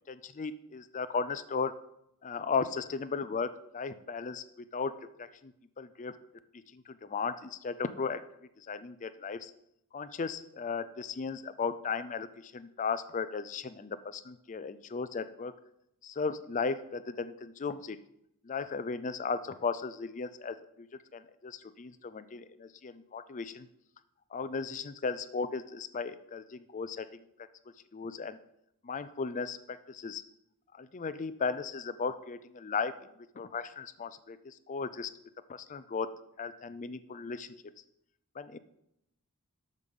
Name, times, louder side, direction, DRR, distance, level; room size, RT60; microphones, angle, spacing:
voice 1, 0.0-1.7 2.2-4.4 4.7-4.9 5.2-6.1 6.7-8.2 8.6-9.5 9.9-15.5 16.0-18.0 18.4-20.9 21.1-23.7 24.3-27.1 27.9-28.4 28.8-30.2 30.7-32.9 33.4-35.1 35.5-36.1 36.4-37.5 38.4-38.6, left 5 dB, 35° left, 12 dB, 0.4 m, -36 dB
12.5 x 5.3 x 5.4 m, 0.79 s
head